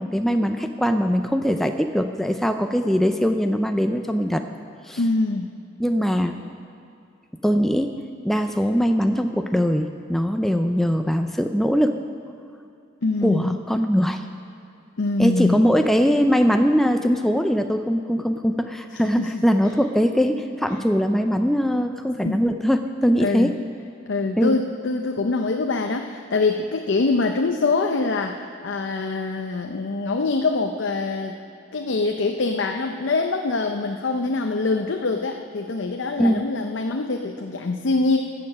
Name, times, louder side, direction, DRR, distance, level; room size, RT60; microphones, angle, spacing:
voice 1, 0.0-4.4 4.9-5.0 5.8-6.4 7.4-7.9 8.2-12.0 13.2-14.2 15.2-23.5 24.4-24.6 36.2-36.4, equal, ahead, 6 dB, 0.3 m, -21 dB
voice 2, 5.0-5.5 13.0-13.6 15.0-15.6 18.9-19.4 20.7-20.8 22.2-22.4 23.2-23.5 24.1-31.4 31.7-38.2, left 3 dB, 70° left, 4 dB, 0.6 m, -24 dB
15.5 x 6.8 x 6.2 m, 2.6 s
head